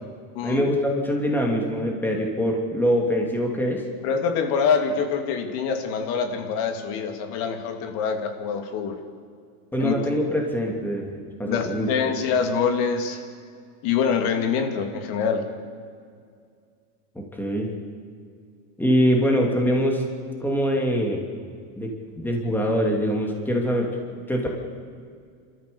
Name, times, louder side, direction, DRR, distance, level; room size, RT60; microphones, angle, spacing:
voice 1, 0.4-3.8 9.7-11.1 11.4-12.1 17.3-17.7 18.8-20.0 20.4-21.2 21.8-21.9 22.2-23.9 24.3-24.5, equal, 5° left, 0 dB, 2.8 m, -23 dB
voice 2, 4.0-9.0 9.8-9.9 11.5-13.2 13.8-15.4, left 6 dB, 50° left, 6 dB, 2.8 m, -25 dB
29.0 x 14.0 x 7.0 m, 2.2 s
supercardioid pair, 145°, 45 cm